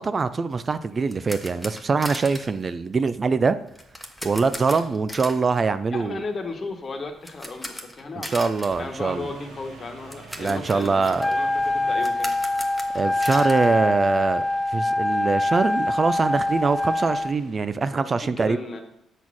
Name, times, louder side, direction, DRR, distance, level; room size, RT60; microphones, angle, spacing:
voice 1, 0.0-3.6 4.2-6.2 8.2-9.3 10.4-11.3 12.9-14.5 14.7-18.6, right 4 dB, 35° right, 13 dB, 0.4 m, -23 dB
sound 1, 0.6-14.6 14.9-15.0 15.4-15.5 15.8-17.3, equal, 5° left, 1.1 m, -40 dB
voice 2, 5.9-8.3 8.7-12.3 17.9-18.8, left 3 dB, 40° left, 5 dB, 1.3 m, -35 dB
sound 2, 8.4-17.7, right 3 dB, 85° right, 1.6 m, -47 dB
Wind instrument woodwind instrument, 11.2-17.3, left 2 dB, 20° left, 0.5 m, -24 dB
7.1 x 4.2 x 6.1 m, 0.78 s
cardioid pair, 90°, 0 cm